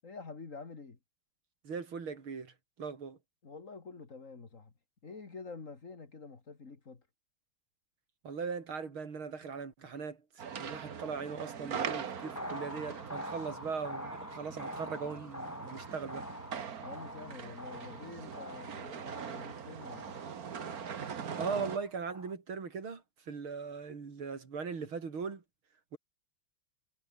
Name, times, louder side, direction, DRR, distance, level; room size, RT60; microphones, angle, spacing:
voice 1, 0.0-1.0 3.4-4.7 5.0-7.1 16.8-20.2, left 4 dB, 40° left, 2.6 m, -48 dB
voice 2, 1.6-3.2 8.2-16.3 21.4-25.4 25.9-26.0, right 5 dB, 75° right, 4.0 m, -39 dB
sound 1, 10.4-21.8, right 7 dB, 50° right, 1.8 m, -42 dB
sound 2, 12.2-22.3, left 1 dB, 5° left, 3.5 m, -46 dB
omnidirectional pair, 2.3 m